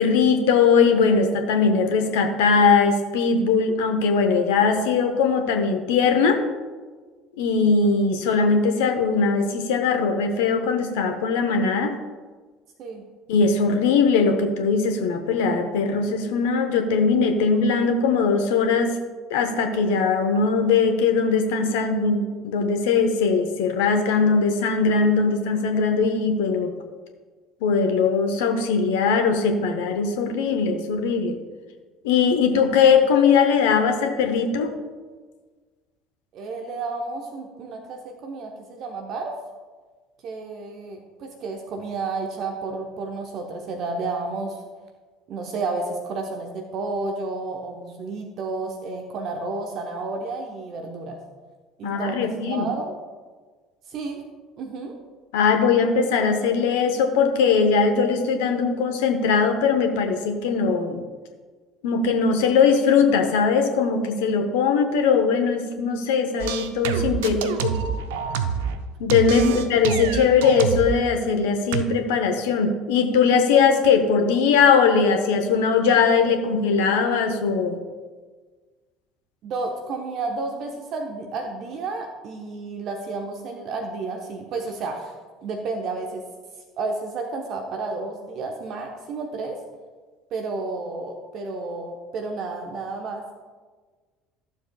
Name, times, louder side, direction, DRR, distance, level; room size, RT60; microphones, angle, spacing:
voice 1, 0.0-6.4 7.4-11.9 13.3-19.0 19.3-26.7 27.6-31.4 32.0-34.7 51.8-52.6 55.3-61.0 61.8-67.8 69.0-77.8, left 5 dB, 65° left, 5 dB, 0.8 m, -20 dB
voice 2, 36.3-39.4 40.2-44.6 45.3-51.2 51.8-52.9 53.9-54.2 54.6-55.0 69.4-69.5 79.4-85.1 85.4-86.2 86.8-89.6 90.3-93.2, right 3 dB, 50° right, 3 dB, 0.9 m, -31 dB
sound 1, 66.4-68.8 69.1-71.0 71.7-71.8, right 7 dB, 70° right, 0.5 m, -27 dB
14.0 x 7.1 x 2.3 m, 1.4 s
figure-of-eight pair, 60°, 0 cm